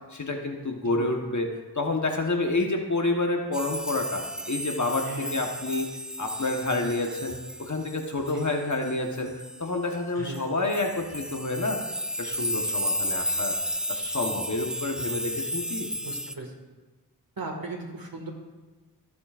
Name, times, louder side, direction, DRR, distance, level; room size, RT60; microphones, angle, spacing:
voice 1, 0.1-5.9 6.2-11.8 12.2-13.6 13.9-15.9, left 2 dB, 50° left, 2 dB, 1.2 m, -29 dB
sound 1, 3.5-9.7 10.3-10.4 10.7-16.3, equal, ahead, 0.4 m, -33 dB
voice 2, 5.0-5.4 8.3-8.5 10.2-10.4 16.0-16.5 17.4-18.3, right 2 dB, 65° right, 2 dB, 1.9 m, -37 dB
15.0 x 8.3 x 2.5 m, 1.2 s
wide cardioid pair, 45°, 39 cm